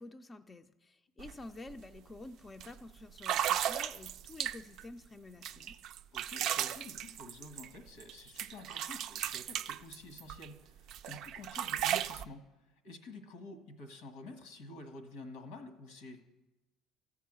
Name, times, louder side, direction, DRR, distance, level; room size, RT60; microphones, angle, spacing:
voice 1, 0.0-5.8, left 2 dB, 25° left, 7 dB, 0.5 m, -49 dB
sound 1, 1.2-1.3 1.7-2.0 2.6-2.7 3.2-4.8 5.4-8.1 8.4-10.5 10.9-12.2, right 11 dB, 65° right, 0.4 m, -35 dB
voice 2, 6.1-12.4 12.8-16.2, left 2 dB, 90° left, 7 dB, 1.5 m, -49 dB
14.0 x 4.7 x 8.9 m, 1.0 s
supercardioid pair, 90°, 0 cm